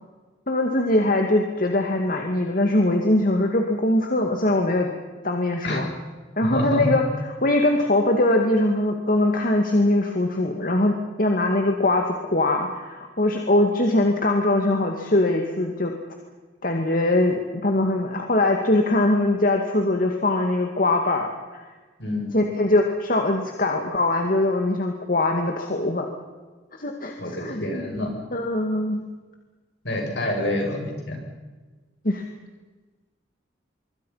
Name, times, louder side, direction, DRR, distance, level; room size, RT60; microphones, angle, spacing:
voice 1, 0.5-4.9 5.2-5.9 6.4-7.0 7.4-15.9 16.6-21.6 22.3-26.1 26.7-27.9 28.3-29.0 32.0-32.2, left 1 dB, 50° left, 3 dB, 2.2 m, -22 dB
voice 2, 6.4-6.8 22.0-22.3 27.2-28.1 29.8-31.2, left 1 dB, 70° left, 1 dB, 7.3 m, -27 dB
25.0 x 24.5 x 5.8 m, 1.3 s
head